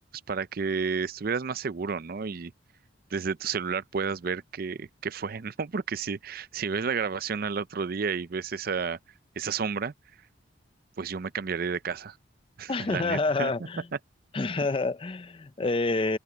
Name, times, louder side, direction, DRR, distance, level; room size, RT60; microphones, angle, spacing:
voice 1, 0.3-2.5 3.1-9.0 9.4-9.9 11.0-12.2 12.6-13.5 14.6-14.7, right 5 dB, 50° right, 0.5 m, -31 dB
voice 2, 12.7-13.9 14.3-16.2, left 3 dB, 30° left, 0.5 m, -28 dB
open air
head